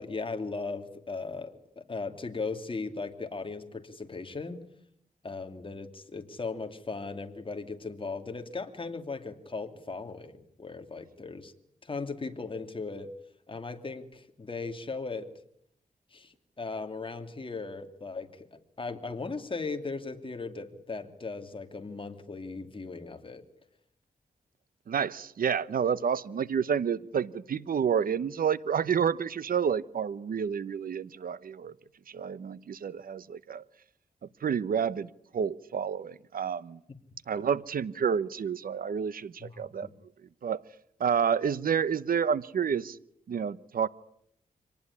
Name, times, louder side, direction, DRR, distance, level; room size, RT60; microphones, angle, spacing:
voice 1, 0.0-4.6 5.2-11.5 11.8-13.1 13.5-15.3 16.1-18.5 18.8-23.4 39.4-39.9, left 4 dB, 35° left, 2.8 m, -37 dB
voice 2, 24.9-31.7 32.1-33.6 34.4-36.8 37.3-39.9 40.4-40.6 41.0-43.0 43.3-43.9, right 7 dB, 75° right, 0.9 m, -29 dB
25.5 x 19.0 x 9.8 m
wide cardioid pair, 85°, 15 cm